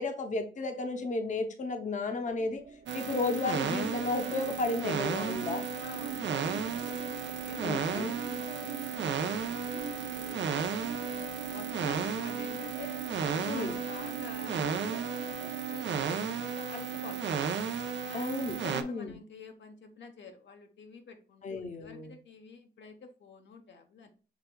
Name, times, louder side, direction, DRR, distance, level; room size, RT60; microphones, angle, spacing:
voice 1, 0.0-2.6 2.9-5.7 7.6-8.1 13.5-13.8 18.1-19.1 21.4-22.2, left 3 dB, 45° left, 6 dB, 0.6 m, -33 dB
sound 1, 2.3-17.2, right 5 dB, 60° right, 0.9 m, -45 dB
sound 2, 2.9-18.8, right 7 dB, 90° right, 0.5 m, -34 dB
voice 2, 5.8-7.0 7.4-10.6 11.0-13.0 13.3-17.5 18.1-21.4 21.7-24.1, left 4 dB, 90° left, 5 dB, 0.8 m, -49 dB
5.8 x 3.3 x 2.2 m, 0.37 s
wide cardioid pair, 120°, 18 cm